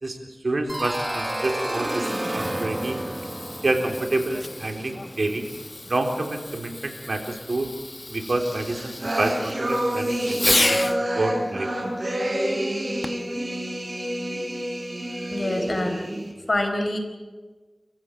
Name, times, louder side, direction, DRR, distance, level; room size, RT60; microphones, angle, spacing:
voice 1, 0.4-3.0 3.6-5.5 5.9-7.7 8.1-11.7, right 2 dB, 70° right, 4 dB, 3.8 m, -28 dB
sound 1, 0.7-5.4, right 1 dB, 25° right, 0.9 m, -31 dB
Fireworks, 1.7-11.0 13.0-13.4 14.1-14.2, left 2 dB, 40° left, 1.1 m, -32 dB
sound 2, 8.4-16.3, right 1 dB, 45° right, 6.8 m, -28 dB
voice 2, 15.2-16.0 16.5-17.0, left 1 dB, 55° left, 5 dB, 4.4 m, -25 dB
27.5 x 15.0 x 8.8 m, 1.3 s
wide cardioid pair, 50°, 0 cm